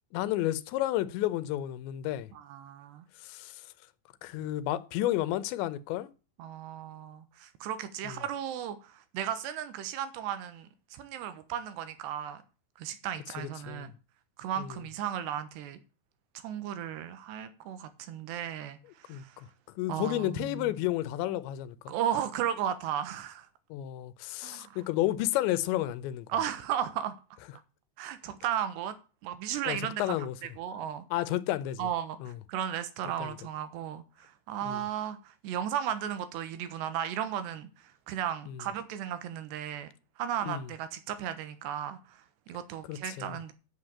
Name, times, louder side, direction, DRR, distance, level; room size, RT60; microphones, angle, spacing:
voice 1, 0.1-2.3 3.2-3.7 4.2-6.1 8.0-8.2 13.4-13.9 14.6-14.8 19.1-19.5 19.8-21.9 23.7-26.3 29.7-30.4 31.1-31.9 32.2-32.4 33.2-33.4 34.6-34.8 38.5-38.6 40.5-40.7 42.9-43.4, left 14 dB, 85° left, 3.1 m, -32 dB
voice 2, 2.3-3.1 6.4-12.4 12.8-13.9 14.4-15.8 16.3-19.4 19.9-20.7 21.9-23.5 24.4-24.8 26.3-27.1 28.0-29.0 29.2-30.2 30.6-31.0 31.8-39.9 40.2-43.5, right 10 dB, 80° right, 3.3 m, -35 dB
8.4 x 8.1 x 8.6 m
omnidirectional pair, 5.0 m